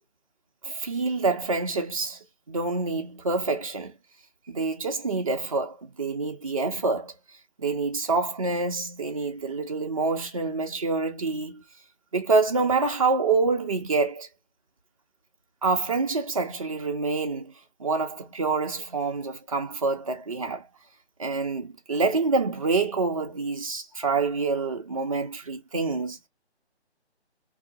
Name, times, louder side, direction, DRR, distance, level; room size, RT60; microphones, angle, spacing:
voice 1, 0.6-2.2 2.5-3.9 4.5-7.1 7.6-11.6 12.1-14.3 15.6-17.5 17.8-20.7 21.2-26.2, right 4 dB, 30° right, 0.7 m, -26 dB
2.7 x 2.7 x 3.7 m
figure-of-eight pair, 160°, 34 cm